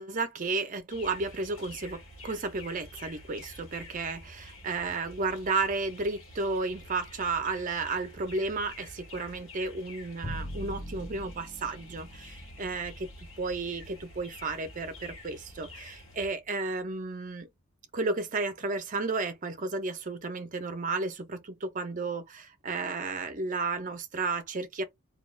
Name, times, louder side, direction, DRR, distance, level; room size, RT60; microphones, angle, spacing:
voice 1, 0.0-13.1 13.4-17.5 17.9-24.8, right 3 dB, 40° right, 0.5 m, -33 dB
sound 1, 0.9-16.3, left 1 dB, 70° left, 1.2 m, -49 dB
Bowed string instrument, 10.2-16.4, equal, 15° left, 0.5 m, -44 dB
2.3 x 2.3 x 3.1 m
head